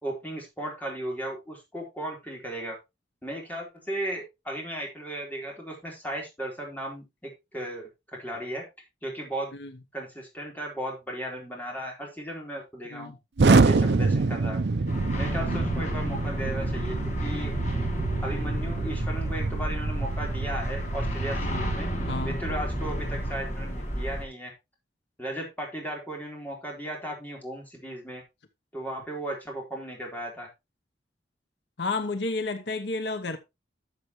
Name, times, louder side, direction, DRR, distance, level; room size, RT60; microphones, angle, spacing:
voice 1, 0.0-2.8 3.2-8.6 9.0-9.5 9.9-13.1 13.5-14.6 15.2-17.5 18.2-21.9 22.2-24.5 25.2-28.2 28.7-30.5, right 1 dB, 10° left, 4.0 m, -36 dB
Explosion, 13.4-23.3, right 3 dB, 70° right, 0.6 m, -27 dB
sound 1, 14.9-24.2, equal, 40° left, 2.1 m, -32 dB
voice 2, 21.4-21.7 22.1-22.4 31.8-33.4, left 3 dB, 80° left, 0.9 m, -31 dB
12.5 x 6.8 x 3.1 m
head